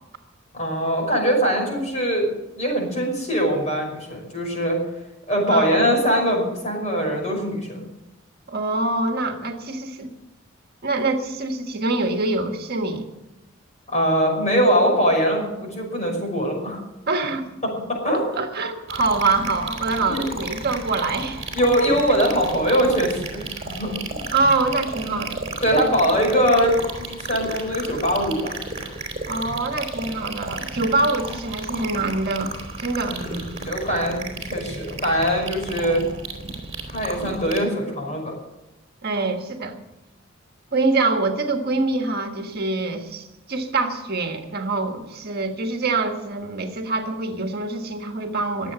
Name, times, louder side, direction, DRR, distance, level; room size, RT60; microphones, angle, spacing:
voice 1, 0.5-2.3 2.6-4.8 5.3-7.8 13.9-16.8 17.6-18.4 20.1-20.3 21.6-24.3 25.6-28.6 33.1-36.0 36.9-38.3, equal, 35° left, 1 dB, 5.7 m, -22 dB
voice 2, 5.5-5.8 8.5-10.1 10.8-13.1 17.1-17.5 18.3-21.4 24.3-25.5 26.0-26.1 29.3-33.2 39.0-39.7 40.7-48.7, right 3 dB, 50° right, 4 dB, 1.6 m, -25 dB
sound 1, 18.9-37.6, right 3 dB, 30° right, 3.5 m, -33 dB
22.0 x 7.9 x 6.9 m, 0.99 s
head